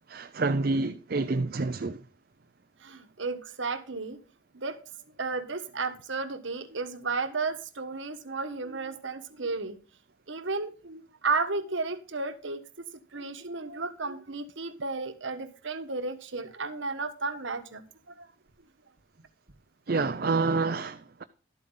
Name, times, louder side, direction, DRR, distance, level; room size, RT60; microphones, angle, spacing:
voice 1, 0.1-2.0 19.9-21.2, right 3 dB, 50° right, 0.5 m, -28 dB
voice 2, 2.8-4.2 4.5-4.8 5.2-9.8 10.3-12.9 13.1-17.8 18.2-18.3, right 3 dB, 75° right, 1.3 m, -33 dB
12.5 x 8.5 x 3.8 m
head